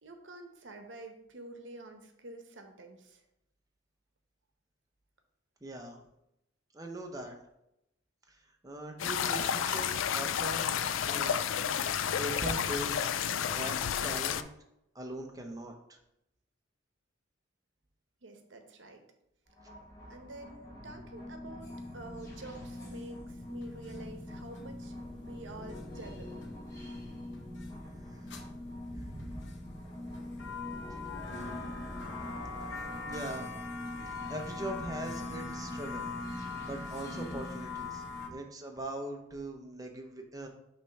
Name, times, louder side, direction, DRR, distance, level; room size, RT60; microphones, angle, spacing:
voice 1, 0.0-3.2 18.2-19.0 20.1-26.4, right 2 dB, 75° right, 5 dB, 0.9 m, -48 dB
voice 2, 5.6-6.0 6.7-7.4 8.3-8.4 8.6-10.7 11.0-11.3 12.2-13.1 13.5-13.8 14.0-14.5 14.9-16.0 28.8-29.5 30.9-31.0 33.0-33.5 34.3-36.0 36.7-38.0 38.3-40.5, right 1 dB, 20° right, 3 dB, 0.8 m, -40 dB
sound 1, 9.0-14.4, left 8 dB, 90° left, 0.4 m, -31 dB
sound 2, 19.5-38.3, left 1 dB, 20° left, 2.0 m, -43 dB
sound 3, 23.6-24.0 24.5-24.6 25.5-25.8 26.4-26.5 27.3-27.7 28.3-28.4 29.2-29.7 30.1-38.3, left 4 dB, 65° left, 0.8 m, -42 dB
6.0 x 3.2 x 5.6 m, 0.84 s
head